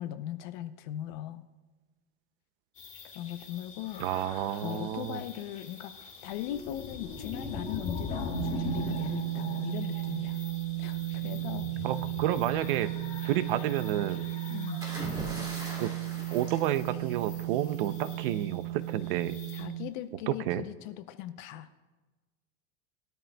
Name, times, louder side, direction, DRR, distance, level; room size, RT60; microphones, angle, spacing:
voice 1, 0.0-1.4 3.0-4.3 4.5-10.4 10.8-11.9 14.5-14.8 19.5-21.7, left 12 dB, 45° left, 11 dB, 0.6 m, -39 dB
sound 1, 2.8-19.6, left 4 dB, 20° left, 2.0 m, -42 dB
voice 2, 4.0-5.2 11.8-12.9 13.2-14.3 15.8-15.9 16.3-19.4 20.3-20.6, right 12 dB, 50° right, 14 dB, 0.6 m, -30 dB
sound 2, 8.3-19.9, right 19 dB, 90° right, 0.8 m, -35 dB
sound 3, 14.8-17.6 18.8-19.1, right 1 dB, 10° right, 2.2 m, -40 dB
21.0 x 13.0 x 2.2 m, 1.2 s
supercardioid pair, 170°, 35 cm